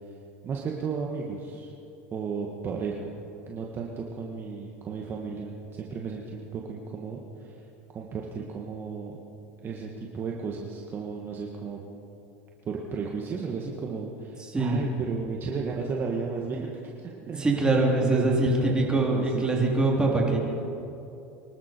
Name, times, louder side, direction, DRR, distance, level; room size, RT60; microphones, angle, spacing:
voice 1, 0.4-1.7 2.1-3.1 3.5-7.6 7.9-9.2 9.6-11.8 12.6-17.5 18.0-19.5, right 5 dB, 35° right, -1 dB, 1.7 m, -34 dB
voice 2, 14.5-14.8 17.4-20.4, right 2 dB, 15° right, -2 dB, 3.6 m, -23 dB
24.5 x 12.5 x 4.6 m, 2.7 s
supercardioid pair, 110°, 7 cm